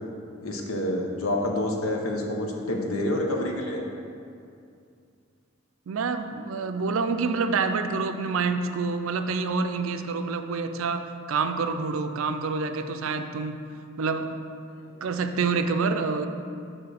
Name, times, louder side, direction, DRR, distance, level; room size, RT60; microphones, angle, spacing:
voice 1, 0.4-3.8 14.8-14.9, left 1 dB, 85° left, 1 dB, 0.9 m, -28 dB
voice 2, 5.9-13.6 14.0-14.4 15.0-16.3, right 4 dB, 75° right, 8 dB, 0.4 m, -27 dB
6.8 x 3.7 x 6.3 m, 2.4 s
head